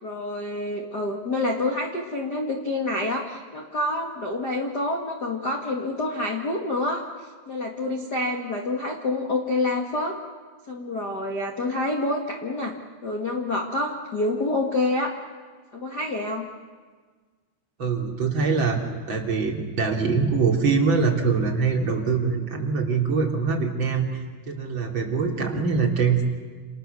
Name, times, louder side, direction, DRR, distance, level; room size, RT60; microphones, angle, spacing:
voice 1, 0.0-7.0 7.5-10.1 10.7-12.7 13.0-15.1 15.7-16.5, left 2 dB, 60° left, 1 dB, 1.0 m, -27 dB
voice 2, 17.8-18.8 19.1-26.2, right 5 dB, 30° right, 0 dB, 3.2 m, -23 dB
29.5 x 28.5 x 7.0 m, 1.5 s
omnidirectional pair, 5.5 m